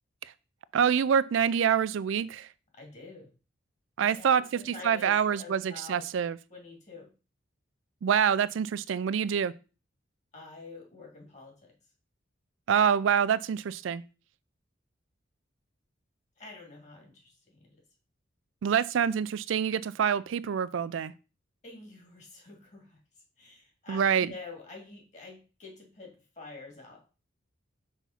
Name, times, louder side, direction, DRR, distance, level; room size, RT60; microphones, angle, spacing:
voice 1, 0.7-2.5 4.0-6.4 8.0-9.5 12.7-14.0 18.6-21.1 23.9-24.3, right 8 dB, 80° right, 0.4 m, -26 dB
voice 2, 2.7-3.3 4.0-6.0 6.5-7.1 10.3-11.7 16.4-17.8 21.6-23.0 23.4-27.1, left 3 dB, 35° left, 2.3 m, -47 dB
5.6 x 3.6 x 5.7 m
head